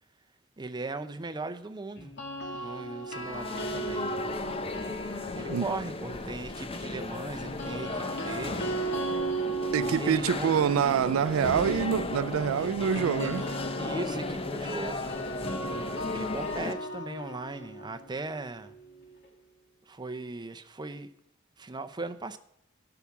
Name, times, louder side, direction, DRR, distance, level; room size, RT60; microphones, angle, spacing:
voice 1, 0.6-2.1 2.5-4.1 5.3-8.7 9.8-10.8 12.6-12.9 13.2-13.3 13.8-15.2 16.1-18.8 19.9-21.1 21.6-22.4, right 3 dB, 20° right, 0.6 m, -38 dB
sound 1, 2.0-6.1 7.4-19.3, right 2 dB, 60° left, 1.9 m, -37 dB
sound 2, 3.1-16.7, left 3 dB, 30° left, 0.7 m, -35 dB
voice 2, 9.7-13.5, right 8 dB, 90° right, 0.3 m, -26 dB
12.0 x 5.9 x 7.2 m
head